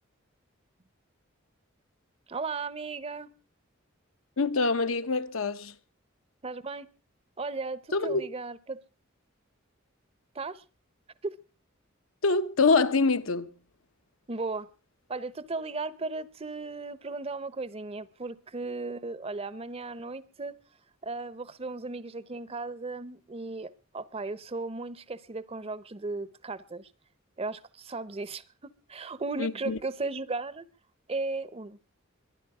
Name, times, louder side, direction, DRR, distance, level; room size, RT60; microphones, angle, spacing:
voice 1, 2.3-3.3 6.4-6.9 7.4-8.8 10.3-10.6 11.2-11.4 14.3-14.7 15.1-20.6 21.0-26.9 27.4-30.7 31.1-31.8, right 3 dB, 30° right, 0.7 m, -36 dB
voice 2, 4.4-5.7 7.9-8.3 12.2-13.5 29.4-29.8, left 4 dB, 75° left, 0.9 m, -25 dB
23.0 x 10.5 x 4.8 m
head